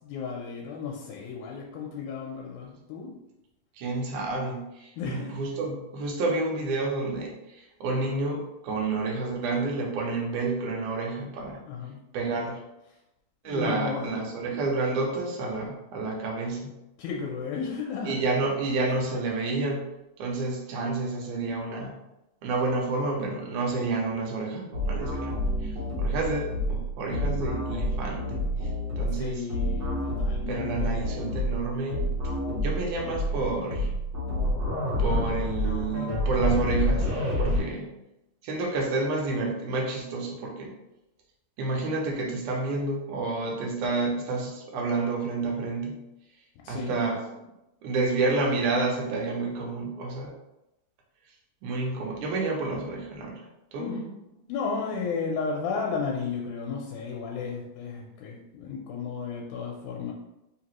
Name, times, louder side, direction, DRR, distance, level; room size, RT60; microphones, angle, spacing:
voice 1, 0.0-3.1 5.0-5.3 11.7-12.0 13.5-14.2 17.0-18.1 29.2-31.0 46.6-47.0 53.8-54.1 54.5-60.1, left 5 dB, 90° left, -1 dB, 2.1 m, -33 dB
voice 2, 3.8-11.6 12.1-12.6 13.4-16.7 18.0-19.8 20.2-21.9 22.4-28.4 29.0-29.5 30.5-32.0 32.6-33.9 35.0-37.9 38.4-40.7 41.6-46.0 46.7-47.2 47.8-50.3 51.6-53.9, right 3 dB, 90° right, -1 dB, 2.3 m, -29 dB
sound 1, 24.7-37.6, left 1 dB, 60° right, 1.2 m, -28 dB
4.8 x 2.9 x 3.0 m, 0.91 s
omnidirectional pair, 3.5 m